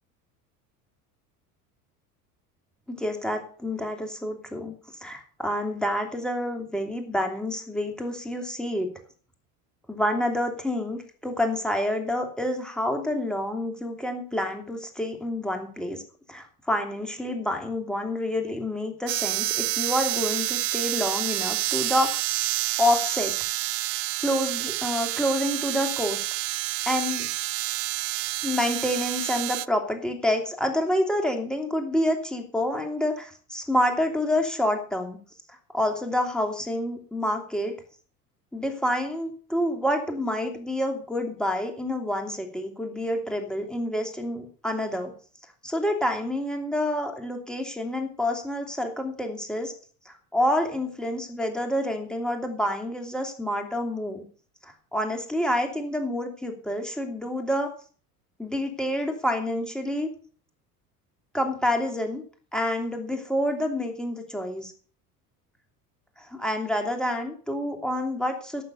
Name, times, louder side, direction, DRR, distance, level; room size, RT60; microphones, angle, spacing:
voice 1, 2.9-4.7 5.0-8.9 9.9-16.0 16.3-22.3 22.8-23.3 24.2-26.3 26.9-27.3 28.4-35.2 35.7-37.7 38.5-45.1 45.6-49.7 50.0-54.2 54.6-57.7 58.4-60.1 61.3-62.2 62.5-64.7 66.2-68.6, left 1 dB, ahead, 4 dB, 2.8 m, -28 dB
sound 1, 19.1-29.7, right 21 dB, 60° right, 0.5 m, -28 dB
12.0 x 6.8 x 6.8 m, 0.43 s
figure-of-eight pair, 70°, 46 cm